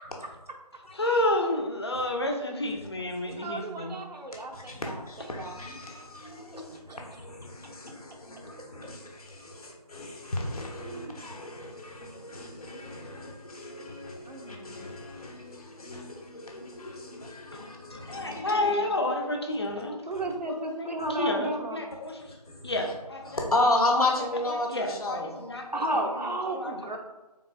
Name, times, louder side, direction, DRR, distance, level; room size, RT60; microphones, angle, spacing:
voice 1, 0.9-4.0 17.5-19.9 20.5-20.9 21.2-22.2 22.6-23.4 24.2-25.8 26.1-26.2 26.5-26.7, left 1 dB, 40° left, 2 dB, 0.5 m, -30 dB
voice 2, 3.2-5.6 6.5-6.6 6.9-7.0 10.8-11.3 14.3-14.9 20.1-21.8 25.7-27.0, right 2 dB, 85° right, 2 dB, 0.8 m, -34 dB
voice 3, 4.5-6.8 7.2-18.4 23.3-25.3, left 2 dB, 60° left, 0 dB, 0.9 m, -33 dB
3.8 x 3.6 x 2.2 m, 1.1 s
figure-of-eight pair, 165°, 21 cm